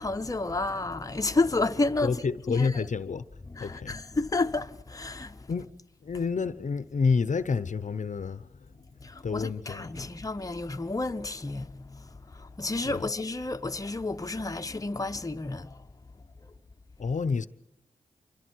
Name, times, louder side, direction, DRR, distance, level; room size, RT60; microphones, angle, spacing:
voice 1, 0.0-2.9 3.4-5.5 6.1-6.3 9.0-15.9 16.4-16.5, left 2 dB, 25° left, 0.9 m, -31 dB
voice 2, 2.0-3.2 3.6-4.0 5.5-5.7 6.0-10.1 12.9-13.0 17.0-17.5, left 5 dB, 55° left, 0.8 m, -29 dB
27.0 x 24.0 x 4.6 m
wide cardioid pair, 70°, 15 cm